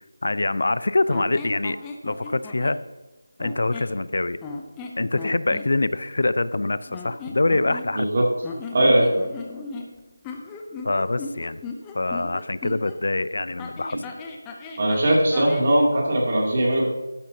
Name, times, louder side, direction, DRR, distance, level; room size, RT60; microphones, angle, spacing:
voice 1, 0.2-1.8 2.0-2.8 3.4-4.4 5.0-8.1 10.8-11.6 11.9-14.0, left 2 dB, 60° left, 15 dB, 0.5 m, -24 dB
Mouth Squeaks, 1.1-2.8 3.4-4.0 4.4-5.7 6.9-8.1 8.4-13.0 13.6-15.7, left 4 dB, 10° left, 0.6 m, -37 dB
voice 2, 8.7-9.1 13.9-14.0 14.8-16.9, right 1 dB, 35° right, -2 dB, 2.7 m, -20 dB
12.0 x 11.5 x 2.8 m, 1.2 s
figure-of-eight pair, 170°, 0 cm